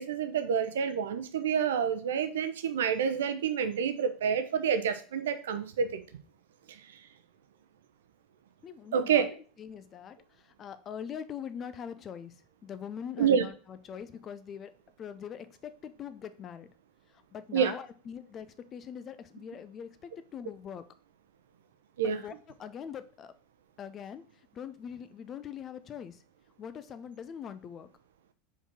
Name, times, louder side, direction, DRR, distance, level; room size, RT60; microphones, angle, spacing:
voice 1, 0.0-6.0 6.7-6.8 8.9-9.3 13.2-13.4 17.5-17.7 22.0-22.2, right 7 dB, 65° right, 10 dB, 0.7 m, -28 dB
voice 2, 8.6-9.3 9.6-10.2 10.6-12.3 12.6-14.7 15.0-16.7 17.3-20.8 22.0-22.3 22.6-23.3 23.8-24.2 24.5-26.2 26.6-27.9, left 8 dB, 35° left, 12 dB, 0.6 m, -42 dB
5.1 x 4.1 x 6.0 m, 0.40 s
figure-of-eight pair, 75°, 0 cm